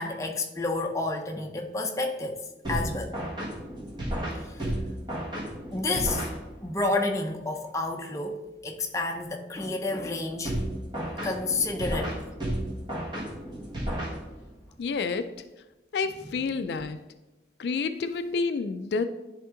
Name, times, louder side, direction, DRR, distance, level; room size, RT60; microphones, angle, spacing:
voice 1, 0.0-2.4 2.7-3.2 5.7-6.3 6.6-10.8 11.2-12.3 16.2-16.3, left 2 dB, 15° left, 0.6 m, -30 dB
sound 1, 2.6-6.8 10.4-14.7, right 1 dB, 25° right, 1.5 m, -33 dB
voice 2, 14.8-15.3 15.9-17.0 17.6-19.1, left 4 dB, 70° left, 0.3 m, -29 dB
10.5 x 3.5 x 3.7 m
head